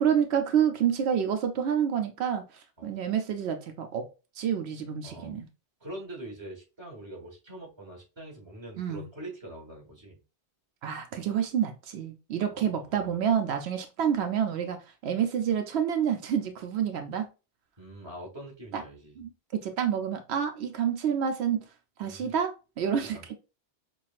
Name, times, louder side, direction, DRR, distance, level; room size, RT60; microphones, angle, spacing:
voice 1, 0.0-4.1 4.4-5.5 8.8-9.0 10.8-17.3 18.7-18.8 19.2-21.6 22.0-23.4, right 8 dB, 85° right, 0.9 m, -28 dB
voice 2, 5.0-5.3 5.8-10.2 12.5-13.3 17.8-19.2 22.0-22.3 23.0-23.2, right 1 dB, 25° right, 1.5 m, -44 dB
6.0 x 2.3 x 2.4 m
omnidirectional pair, 1.1 m